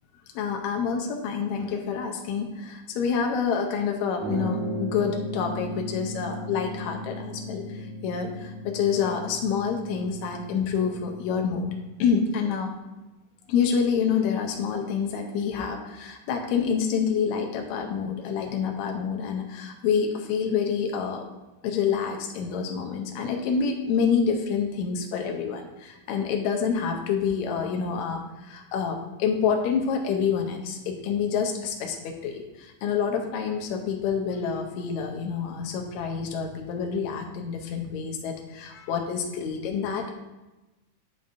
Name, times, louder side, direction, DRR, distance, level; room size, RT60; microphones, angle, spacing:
voice 1, 0.4-11.7 12.0-12.7 13.5-21.2 21.6-40.1, left 6 dB, 80° left, 3 dB, 1.7 m, -27 dB
sound 1, 4.2-11.9, equal, 65° right, 2.8 m, -36 dB
9.7 x 5.2 x 2.6 m, 1.1 s
omnidirectional pair, 3.9 m